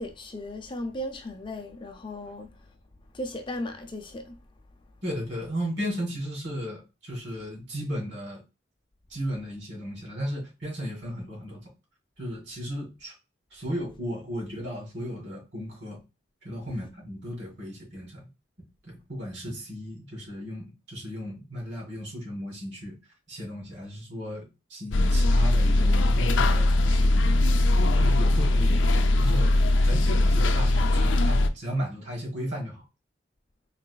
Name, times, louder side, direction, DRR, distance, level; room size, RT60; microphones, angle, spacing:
voice 1, 0.0-2.5 3.1-4.4, left 1 dB, 25° left, 0.5 m, -36 dB
voice 2, 5.0-8.4 9.1-11.7 12.2-13.1 13.5-16.0 16.4-18.3 18.8-23.0 23.3-27.7 28.0-29.6 29.8-32.8, equal, 70° right, 2.2 m, -35 dB
sound 1, 24.9-31.5, left 1 dB, 80° left, 0.4 m, -21 dB
4.0 x 3.1 x 2.2 m
head